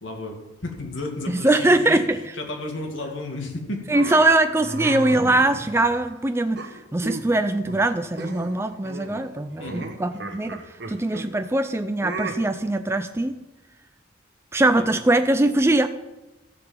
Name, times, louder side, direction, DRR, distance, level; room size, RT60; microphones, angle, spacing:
voice 1, 0.0-2.0 2.3-4.2 9.6-9.9 14.7-15.0, left 2 dB, 85° left, 2 dB, 2.4 m, -33 dB
voice 2, 1.3-2.2 3.9-10.6 10.9-13.4 14.5-15.9, right 2 dB, 15° right, 8 dB, 0.4 m, -21 dB
sound 1, 3.9-6.1 6.6-7.4 7.7-7.9 8.2-8.6 8.8-11.3 12.0-12.4, right 2 dB, 60° right, 1.2 m, -34 dB
14.0 x 6.9 x 7.5 m, 1.0 s
head